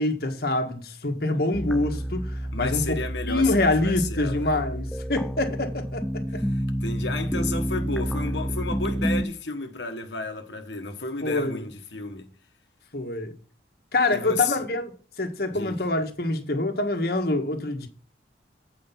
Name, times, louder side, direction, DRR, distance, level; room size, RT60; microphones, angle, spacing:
voice 1, 0.0-3.0 3.3-6.0 11.2-11.6 12.9-13.3 13.9-14.8 15.2-17.9, left 2 dB, 60° left, 1.6 m, -25 dB
sound 1, 1.5-9.3, equal, ahead, 0.3 m, -29 dB
voice 2, 2.5-4.5 6.3-6.5 6.8-12.3 14.1-14.6 15.5-15.7, left 4 dB, 85° left, 1.3 m, -32 dB
8.9 x 5.0 x 5.7 m
head